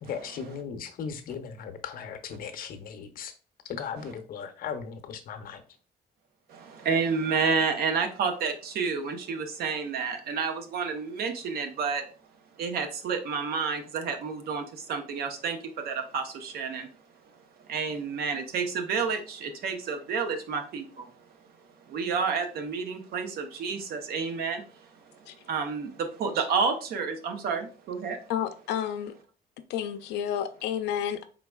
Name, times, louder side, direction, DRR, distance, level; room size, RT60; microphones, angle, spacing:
voice 1, 0.0-3.3 3.6-5.6, left 6 dB, 60° left, 0.7 m, -37 dB
voice 2, 6.5-12.0 12.6-16.9 17.7-21.1 21.9-24.9 25.5-28.2, right 5 dB, 65° right, 0.8 m, -30 dB
voice 3, 28.3-29.1 29.7-31.3, left 9 dB, 85° left, 0.5 m, -30 dB
4.5 x 3.8 x 2.3 m
cardioid pair, 110°, 17 cm